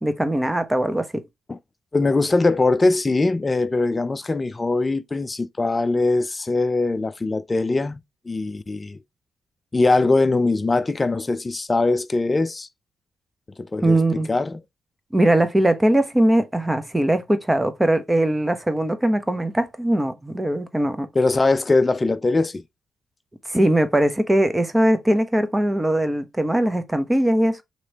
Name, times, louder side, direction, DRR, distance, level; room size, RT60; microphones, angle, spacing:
voice 1, 0.0-1.2 13.8-14.3 15.1-21.1 23.5-27.6, right 1 dB, 15° right, 0.8 m, -20 dB
voice 2, 1.9-8.0 8.3-9.0 9.7-12.7 13.6-14.0 14.3-14.6 21.2-22.6, left 3 dB, 30° left, 0.4 m, -21 dB
3.1 x 3.0 x 4.0 m
supercardioid pair, 50°, 0 cm